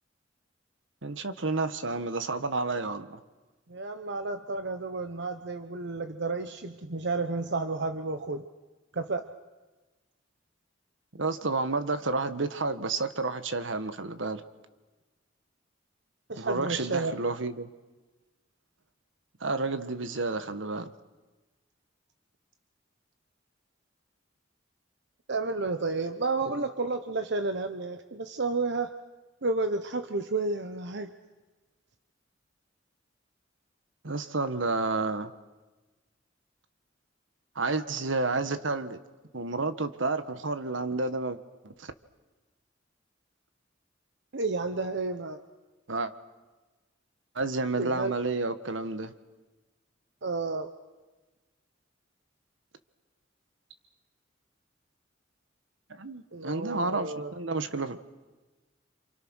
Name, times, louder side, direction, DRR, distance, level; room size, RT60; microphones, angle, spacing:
voice 1, 1.0-3.2 11.1-14.4 16.4-17.7 19.4-20.9 26.5-26.7 34.0-35.3 37.5-39.0 39.3-41.4 41.6-41.9 45.9-46.1 47.3-49.1 55.9-58.0, right 3 dB, 80° right, 11 dB, 1.5 m, -30 dB
voice 2, 3.7-8.4 8.9-9.3 16.3-17.2 25.3-28.9 29.4-31.1 44.3-45.4 47.8-48.1 50.2-50.7 56.3-57.3, right 3 dB, 65° right, 8 dB, 1.0 m, -31 dB
29.0 x 27.5 x 6.4 m, 1.2 s
head